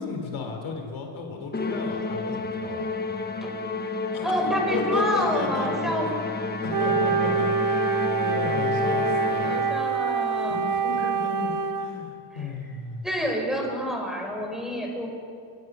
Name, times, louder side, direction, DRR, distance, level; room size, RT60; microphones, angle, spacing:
voice 1, 0.0-2.9 4.1-4.3 4.7-6.3 6.6-9.6 10.5-13.1, left 4 dB, 75° left, 3 dB, 3.7 m, -34 dB
Musical instrument, 1.5-10.0, left 3 dB, 20° left, 1.2 m, -30 dB
voice 2, 4.2-6.1 9.4-10.6 13.0-15.1, equal, ahead, 0 dB, 4.7 m, -28 dB
Wind instrument woodwind instrument, 6.7-11.9, right 5 dB, 45° right, 1.3 m, -25 dB
24.0 x 19.0 x 6.3 m, 2.3 s
cardioid pair, 130°, 47 cm